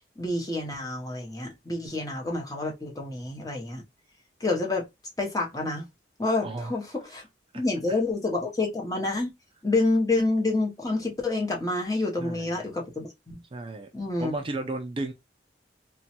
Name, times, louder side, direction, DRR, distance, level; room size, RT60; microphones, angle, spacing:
voice 1, 0.2-3.8 4.4-4.9 5.2-5.8 6.2-7.2 7.5-9.3 9.6-13.4 13.9-14.3, left 2 dB, 20° left, 0.7 m, -28 dB
voice 2, 6.4-6.7 7.9-8.0 12.2-12.4 13.5-13.9 14.2-15.1, right 2 dB, 30° right, 0.4 m, -33 dB
3.0 x 2.2 x 2.8 m
head